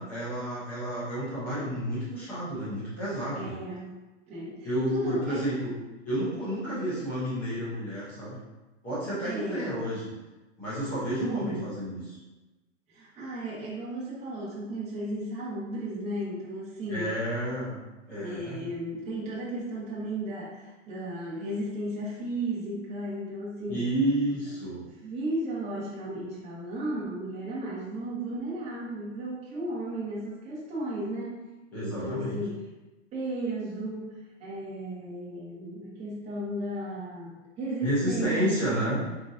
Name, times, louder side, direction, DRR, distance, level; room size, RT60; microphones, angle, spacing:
voice 1, 0.0-3.6 4.6-5.7 6.1-8.3 8.8-10.1 10.6-12.2 16.9-17.8 18.1-18.6 23.7-24.8 31.7-32.4 37.8-39.0, right 1 dB, 5° left, -10 dB, 0.3 m, -30 dB
voice 2, 3.3-4.0 4.3-5.4 9.2-9.8 11.1-11.7 12.9-17.1 18.1-23.9 25.0-31.5 31.8-32.6 33.1-38.9, right 1 dB, 15° right, -7 dB, 1.1 m, -34 dB
3.8 x 3.8 x 2.5 m, 1.1 s
hypercardioid pair, 155°, 38 cm